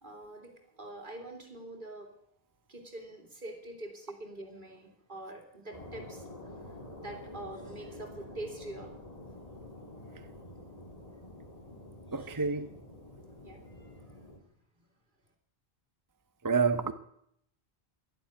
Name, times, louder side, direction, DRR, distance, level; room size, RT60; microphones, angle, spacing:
voice 1, 0.0-2.2 2.7-8.9 12.1-12.6 13.4-14.2, right 1 dB, 55° right, 2.9 m, -45 dB
sound 1, 5.7-14.4, left 1 dB, 35° left, 2.1 m, -48 dB
voice 2, 12.1-12.7 16.4-16.9, right 5 dB, 25° right, 0.6 m, -28 dB
11.5 x 11.5 x 9.3 m
omnidirectional pair, 1.0 m